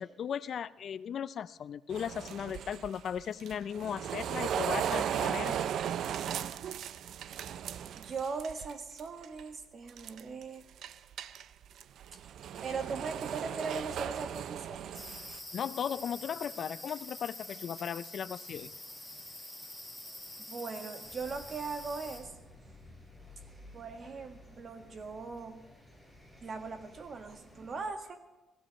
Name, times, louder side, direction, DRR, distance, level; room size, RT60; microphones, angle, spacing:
voice 1, 0.0-5.5 15.5-18.7, left 8 dB, 60° left, 17 dB, 0.4 m, -37 dB
sound 1, 1.9-8.7 9.0-9.4 9.9-10.4 10.8-15.4, right 9 dB, 70° right, 0.5 m, -36 dB
voice 2, 8.0-10.7 12.1-12.2 12.6-15.0 20.5-22.3 23.7-25.6 26.4-28.2, right 4 dB, 50° right, 6 dB, 1.6 m, -39 dB
sound 2, 14.9-22.2, left 1 dB, ahead, 5.2 m, -46 dB
sound 3, 21.0-27.9, left 1 dB, 15° right, 6.6 m, -55 dB
20.5 x 15.5 x 3.1 m, 1.1 s
cardioid pair, 90°, 0 cm